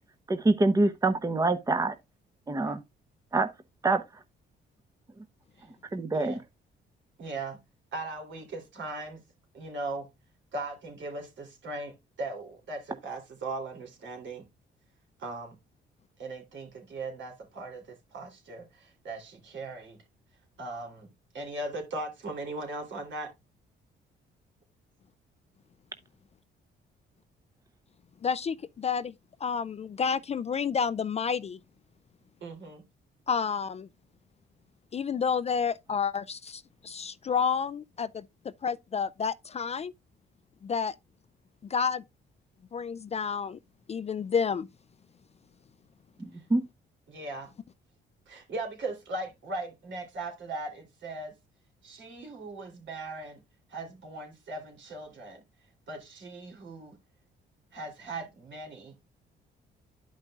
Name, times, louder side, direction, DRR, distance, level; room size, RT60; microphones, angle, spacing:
voice 1, 0.3-1.9 2.5-2.8 3.3-3.5 3.8-4.0 5.9-6.4 46.2-46.6, right 2 dB, 15° right, 0.8 m, -25 dB
voice 2, 7.2-7.6 7.9-9.2 9.5-10.1 10.5-14.4 15.2-15.5 16.2-20.0 20.6-21.1 21.3-23.3 32.4-32.8 47.1-47.5 48.3-51.3 51.8-53.4 53.7-55.4 55.9-57.0 57.7-58.9, right 2 dB, 70° right, 3.2 m, -38 dB
voice 3, 28.2-29.1 29.4-31.6 33.3-33.9 34.9-38.2 38.6-39.9 40.6-40.9 41.7-42.0 42.7-43.6 43.9-44.7, left 6 dB, 35° left, 0.3 m, -30 dB
12.0 x 5.3 x 2.4 m
cardioid pair, 90°, 20 cm